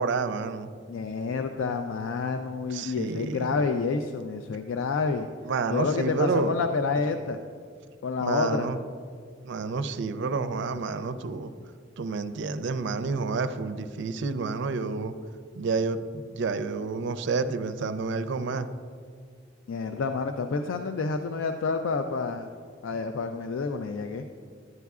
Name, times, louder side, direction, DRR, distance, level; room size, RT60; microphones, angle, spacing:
voice 1, 0.0-0.7 2.7-3.6 5.4-6.5 8.2-8.8 9.4-11.5 12.0-15.1 15.5-18.7, right 4 dB, 65° right, 11 dB, 0.4 m, -29 dB
voice 2, 0.9-5.3 5.7-7.4 8.0-8.7 19.7-22.5 22.8-24.2, left 4 dB, 85° left, 6 dB, 0.4 m, -28 dB
11.0 x 9.2 x 2.4 m, 2.1 s
head